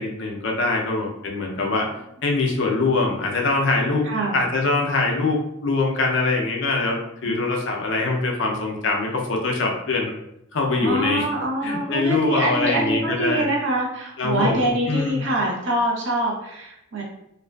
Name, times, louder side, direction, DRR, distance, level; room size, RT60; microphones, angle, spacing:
voice 1, 0.0-1.9 2.2-4.1 4.3-10.1 10.5-11.2 11.6-13.5 14.2-15.2, left 3 dB, 60° left, 0 dB, 0.4 m, -23 dB
voice 2, 4.0-4.4 7.2-7.4 10.8-17.0, right 1 dB, 65° right, -3 dB, 0.7 m, -25 dB
2.5 x 2.3 x 2.2 m, 0.81 s
head